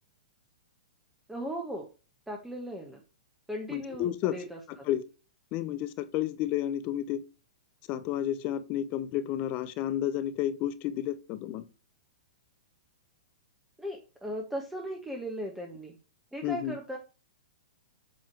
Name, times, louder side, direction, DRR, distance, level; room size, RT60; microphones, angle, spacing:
voice 1, 1.3-1.9 2.3-3.0 3.5-4.9 13.8-16.0 16.3-17.0, equal, 5° right, 1.3 m, -37 dB
voice 2, 3.7-4.4 4.9-5.0 5.5-7.2 7.9-11.6 16.4-16.8, left 12 dB, 40° left, 0.8 m, -31 dB
7.7 x 3.5 x 4.5 m
hypercardioid pair, 120°, 4 cm